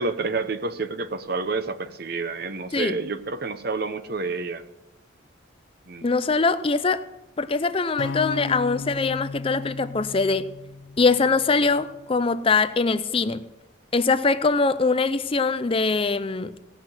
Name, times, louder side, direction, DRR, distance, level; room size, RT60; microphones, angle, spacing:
voice 1, 0.0-4.6 5.9-6.1, right 3 dB, 50° right, 11 dB, 0.8 m, -29 dB
voice 2, 6.0-7.0 7.4-10.5 11.0-13.5 13.9-16.5, left 4 dB, 25° left, 12 dB, 0.4 m, -22 dB
sound 1, 8.0-12.1, left 4 dB, 75° left, 0.7 m, -35 dB
17.5 x 6.0 x 8.9 m, 1.0 s
head